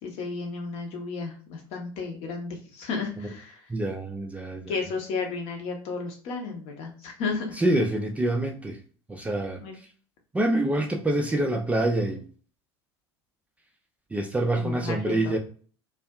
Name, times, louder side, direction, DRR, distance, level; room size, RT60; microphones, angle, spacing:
voice 1, 0.0-3.6 4.7-7.6 9.6-9.8 14.5-15.4, left 4 dB, 45° left, 0.8 m, -33 dB
voice 2, 3.7-4.7 7.6-8.8 9.1-9.6 10.3-12.2 14.1-15.4, right 1 dB, 10° right, 0.3 m, -26 dB
2.5 x 2.3 x 2.2 m
figure-of-eight pair, 70°, 14 cm